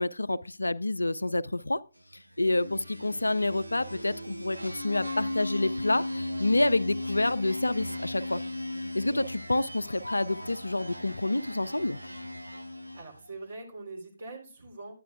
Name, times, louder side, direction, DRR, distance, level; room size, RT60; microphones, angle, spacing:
voice 1, 0.0-1.8 2.4-8.4 8.9-12.0, left 2 dB, 80° left, 0.4 m, -28 dB
sound 1, 2.4-13.3, left 1 dB, 85° right, 0.7 m, -37 dB
voice 2, 12.9-14.9, right 3 dB, 55° right, 3.4 m, -43 dB
12.0 x 9.1 x 2.4 m
figure-of-eight pair, 140°, 0 cm